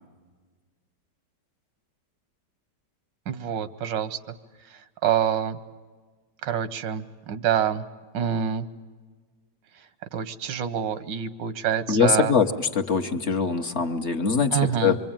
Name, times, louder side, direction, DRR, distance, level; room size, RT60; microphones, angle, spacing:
voice 1, 3.3-4.2 4.6-5.6 6.4-7.8 8.1-8.7 9.7-12.3 14.5-15.0, right 9 dB, 90° right, 13 dB, 1.7 m, -27 dB
voice 2, 11.9-15.0, left 5 dB, 45° left, 5 dB, 1.2 m, -23 dB
25.0 x 24.5 x 8.9 m, 1.4 s
omnidirectional pair, 1.9 m